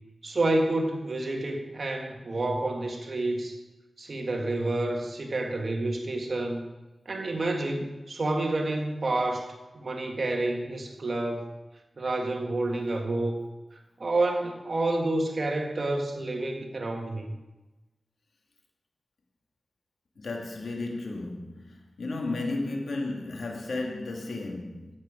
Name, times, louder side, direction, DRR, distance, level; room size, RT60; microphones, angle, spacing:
voice 1, 0.2-3.6 4.0-6.6 7.0-9.5 9.7-11.4 12.0-13.4 14.0-17.4, right 2 dB, 55° right, 1.7 m, -29 dB
voice 2, 20.2-25.0, left 2 dB, 75° left, 1.9 m, -33 dB
12.0 x 8.9 x 5.0 m
wide cardioid pair, 65°, 0 cm